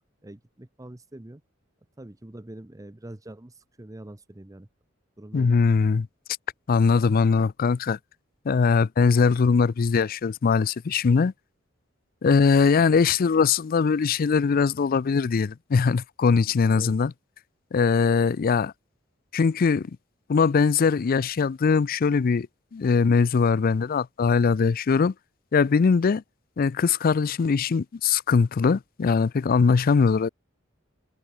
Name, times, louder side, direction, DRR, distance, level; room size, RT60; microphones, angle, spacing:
voice 1, 0.2-1.4 2.0-4.7 5.2-5.6 16.7-17.0, right 1 dB, 15° right, 0.8 m, -44 dB
voice 2, 5.3-6.1 6.7-8.0 8.5-11.3 12.2-17.1 17.7-18.7 19.3-19.9 20.3-22.5 22.7-25.1 25.5-26.2 26.6-30.3, left 5 dB, 45° left, 0.4 m, -21 dB
head